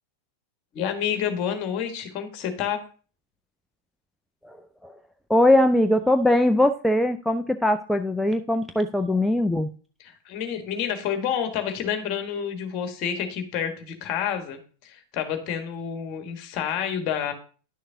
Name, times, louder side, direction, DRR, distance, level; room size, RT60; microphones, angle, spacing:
voice 1, 0.7-2.8 10.0-17.3, left 8 dB, 40° left, 7 dB, 1.3 m, -29 dB
voice 2, 5.3-9.7, left 1 dB, 5° left, 7 dB, 0.4 m, -21 dB
10.5 x 6.5 x 2.7 m, 0.38 s
figure-of-eight pair, 90°, 0 cm